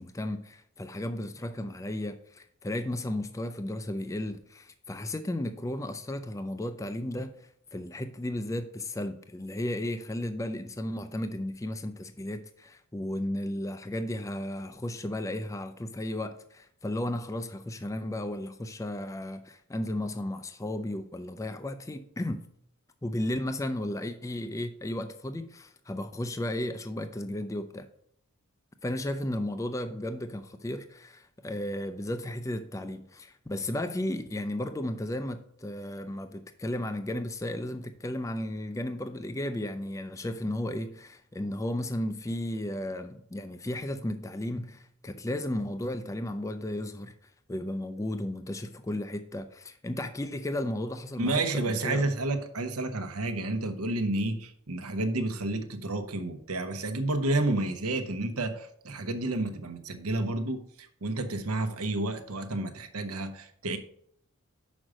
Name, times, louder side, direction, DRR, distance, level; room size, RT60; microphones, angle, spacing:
voice 1, 0.0-22.5 23.0-27.9 28.8-52.1, left 1 dB, 15° left, 0.3 m, -34 dB
voice 2, 51.2-63.8, right 2 dB, 80° right, 0.9 m, -30 dB
6.2 x 5.0 x 6.3 m
head